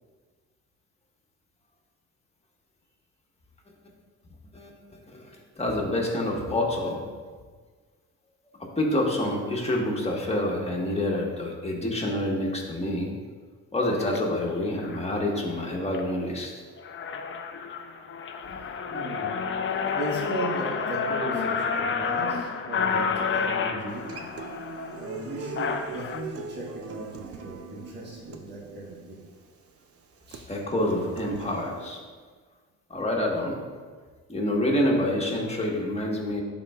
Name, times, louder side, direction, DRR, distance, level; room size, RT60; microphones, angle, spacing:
voice 1, 4.5-7.0 8.6-13.1 13.7-16.5 30.5-32.0 32.9-33.6 34.3-36.4, left 1 dB, 20° left, -1 dB, 1.4 m, -27 dB
sound 1, 14.0-14.2 14.8-15.1 15.6-16.0 16.4-16.5 16.8-26.2, left 6 dB, 40° left, 0.5 m, -30 dB
voice 2, 18.9-19.3 19.9-24.1 24.9-29.3 30.3-30.5, right 1 dB, 35° right, -4 dB, 1.4 m, -36 dB
Human voice / Acoustic guitar, 23.9-31.9, right 5 dB, 50° right, 0.6 m, -41 dB
10.5 x 4.1 x 2.4 m, 1.5 s
cardioid pair, 90°, 30 cm